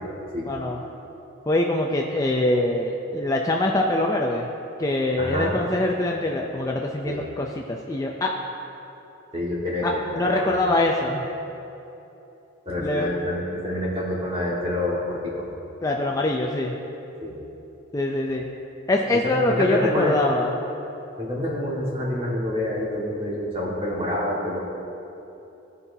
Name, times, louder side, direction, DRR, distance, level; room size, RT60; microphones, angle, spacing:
voice 1, 0.5-0.8 1.5-4.5 4.8-8.3 9.8-11.3 12.8-13.1 15.8-16.8 17.9-18.5 18.9-20.5, left 1 dB, 15° left, 0 dB, 0.4 m, -24 dB
voice 2, 5.2-5.6 7.0-7.2 9.3-10.6 12.6-15.5 17.2-17.4 19.1-20.2 21.2-24.6, left 1 dB, 30° right, -5 dB, 1.6 m, -27 dB
16.0 x 5.6 x 2.7 m, 3.0 s
head